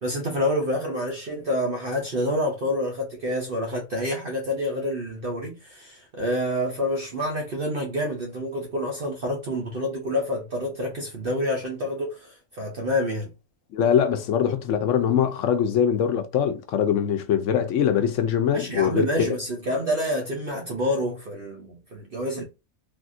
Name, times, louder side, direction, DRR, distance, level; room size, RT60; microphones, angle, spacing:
voice 1, 0.0-13.3 18.5-22.4, left 1 dB, 50° right, 0.8 m, -28 dB
voice 2, 13.7-19.3, left 8 dB, 70° left, 0.9 m, -22 dB
3.4 x 2.5 x 2.5 m
omnidirectional pair, 1.4 m